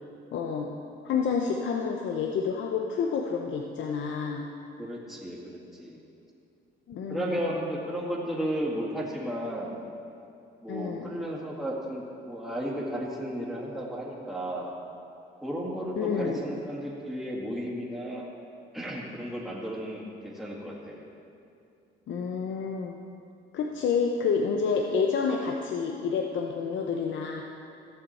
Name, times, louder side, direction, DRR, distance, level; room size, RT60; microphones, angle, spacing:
voice 1, 0.3-0.7 1.0-4.5 6.9-7.4 10.7-11.1 16.0-16.4 22.1-22.9 23.5-27.4, left 5 dB, 70° left, 2 dB, 0.7 m, -29 dB
voice 2, 4.8-6.0 7.1-9.8 10.6-14.7 15.4-18.3 18.7-21.0, equal, ahead, -5 dB, 2.0 m, -34 dB
15.0 x 7.0 x 4.2 m, 2.5 s
cardioid pair, 90°, 20 cm